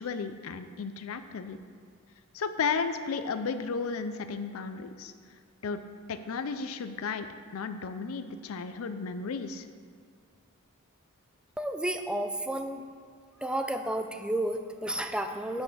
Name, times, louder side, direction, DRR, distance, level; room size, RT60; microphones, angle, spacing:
voice 1, 0.0-1.6 2.3-5.1 5.6-5.8 6.1-7.3 7.5-9.7, left 5 dB, 85° left, 10 dB, 0.4 m, -33 dB
voice 2, 11.6-12.8 13.4-15.6, right 1 dB, 5° right, 6 dB, 0.4 m, -31 dB
8.3 x 5.0 x 6.1 m, 2.1 s
head